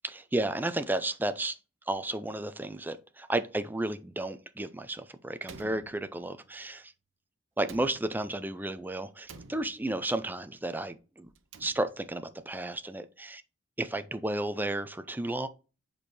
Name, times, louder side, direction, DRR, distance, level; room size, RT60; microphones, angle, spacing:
voice 1, 0.0-1.6 1.9-6.9 7.6-11.3 11.6-13.4 13.8-15.5, right 1 dB, 10° right, 0.5 m, -33 dB
Slam, 5.4-6.6 7.6-8.5 9.2-10.1 11.3-12.2, right 4 dB, 90° right, 0.8 m, -51 dB
7.5 x 4.5 x 3.2 m
head